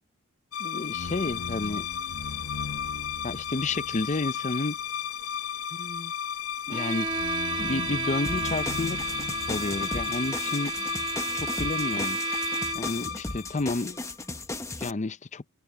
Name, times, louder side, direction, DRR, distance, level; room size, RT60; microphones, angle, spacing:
sound 1, 0.5-14.1, left 8 dB, 65° left, 1.0 m, -34 dB
voice 1, 0.6-1.9 3.2-4.8 5.7-6.1 6.7-7.3 7.6-9.0 9.5-10.9 11.3-12.2 12.7-14.1 14.8-15.4, left 3 dB, 30° left, 0.6 m, -31 dB
Bowed string instrument, 6.7-13.0, right 5 dB, 25° right, 1.5 m, -32 dB
sound 2, 8.2-14.9, left 2 dB, 15° left, 1.0 m, -37 dB
head